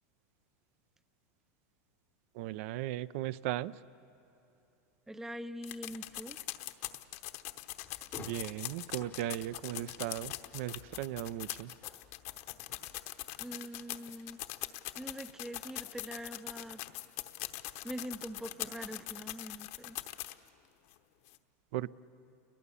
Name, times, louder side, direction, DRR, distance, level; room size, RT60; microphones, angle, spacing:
voice 1, 2.3-3.8 8.2-11.7 21.7-21.9, right 14 dB, 55° right, 18 dB, 0.5 m, -37 dB
voice 2, 5.1-6.4 13.4-14.4 15.0-16.8 17.6-20.0, equal, 5° right, 13 dB, 0.5 m, -43 dB
sound 1, 5.6-20.5 20.9-21.0 21.3-21.4, left 17 dB, 60° left, 0.9 m, -42 dB
sound 2, 7.8-13.0, left 7 dB, 20° left, 0.8 m, -55 dB
29.0 x 22.5 x 7.0 m, 3.0 s
supercardioid pair, 150°, 9 cm